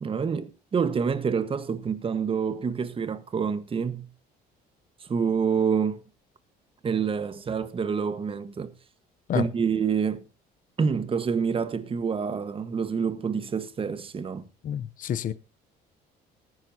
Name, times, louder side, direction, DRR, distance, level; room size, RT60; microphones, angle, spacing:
voice 1, 0.0-4.1 5.0-6.0 6.8-8.7 9.3-10.3 10.8-14.5, right 6 dB, 30° right, 1.4 m, -27 dB
voice 2, 14.6-15.3, left 10 dB, 50° left, 0.8 m, -29 dB
19.0 x 10.5 x 2.8 m
cardioid pair, 110°, 17 cm